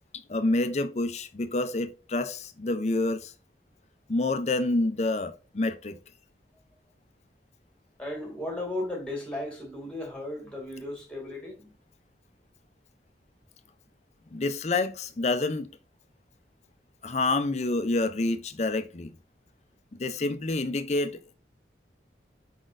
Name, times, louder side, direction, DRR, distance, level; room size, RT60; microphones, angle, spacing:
voice 1, 0.3-3.3 4.1-6.0 14.3-15.7 17.0-19.1 20.0-21.3, left 2 dB, 40° left, 0.5 m, -28 dB
voice 2, 8.0-11.8, left 1 dB, 5° left, 1.8 m, -35 dB
5.1 x 4.0 x 2.4 m
head